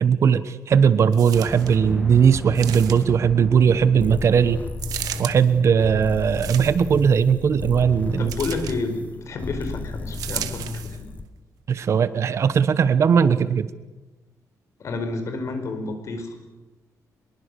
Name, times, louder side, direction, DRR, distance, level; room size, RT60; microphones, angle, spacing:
voice 1, 0.0-4.6 5.2-8.3 11.7-13.7, right 7 dB, 50° right, 14 dB, 1.1 m, -18 dB
sound 1, 1.1-1.8 2.5-3.2 4.8-5.3 6.3-7.0 8.3-8.8 10.1-11.0 11.7-11.8, right 11 dB, 90° right, 1.6 m, -34 dB
sound 2, 1.3-5.3, right 1 dB, 5° right, 1.5 m, -35 dB
sound 3, 4.0-11.3, left 3 dB, 25° left, 1.0 m, -33 dB
voice 2, 8.2-11.1 14.8-16.3, left 3 dB, 50° left, 7 dB, 4.8 m, -30 dB
24.5 x 22.0 x 6.8 m, 1.1 s
cardioid pair, 135°, 6 cm